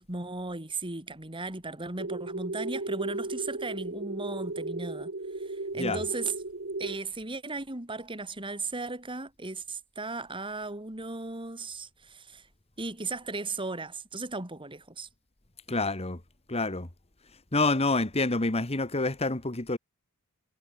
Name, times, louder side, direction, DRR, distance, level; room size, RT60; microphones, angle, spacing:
voice 1, 0.0-5.1 5.5-6.4 6.8-12.4 12.8-15.1, right 3 dB, 25° right, 3.1 m, -36 dB
sound 1, 2.0-7.0, right 2 dB, 55° right, 1.6 m, -35 dB
voice 2, 15.7-16.2 16.5-16.9 17.5-19.8, left 3 dB, 30° left, 1.6 m, -27 dB
head